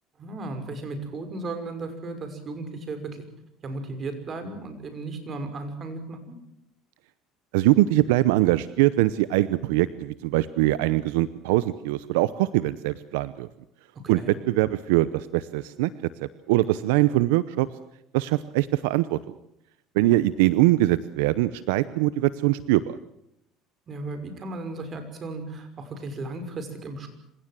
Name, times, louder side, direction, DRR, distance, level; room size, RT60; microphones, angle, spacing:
voice 1, 0.2-3.2 3.6-6.3 13.9-14.3 23.9-27.1, right 2 dB, 40° right, 8 dB, 5.8 m, -35 dB
voice 2, 7.5-13.5 14.1-14.2 14.5-15.9 16.2-17.7 18.1-19.2 19.9-23.0, right 16 dB, 85° right, 16 dB, 0.8 m, -22 dB
26.5 x 16.5 x 7.6 m, 0.78 s
supercardioid pair, 95°, 0 cm